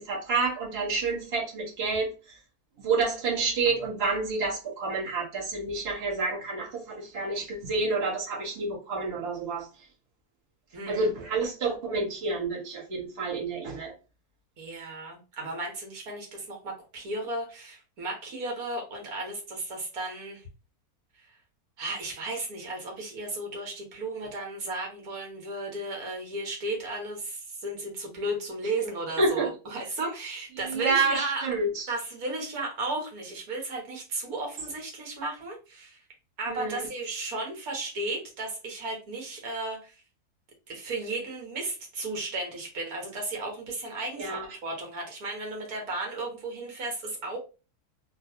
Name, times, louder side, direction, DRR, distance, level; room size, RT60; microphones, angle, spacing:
voice 1, 0.0-2.4 2.8-9.7 10.9-13.9 29.2-29.5 30.6-31.9 36.5-36.9 44.2-44.5, right 3 dB, 45° right, -4 dB, 1.4 m, -29 dB
voice 2, 10.7-11.1 14.6-20.4 21.2-21.3 21.8-31.4 31.9-36.0 36.4-39.9 40.7-47.4, right 2 dB, 70° right, 0 dB, 1.6 m, -34 dB
3.0 x 2.7 x 2.7 m, 0.32 s
omnidirectional pair, 1.6 m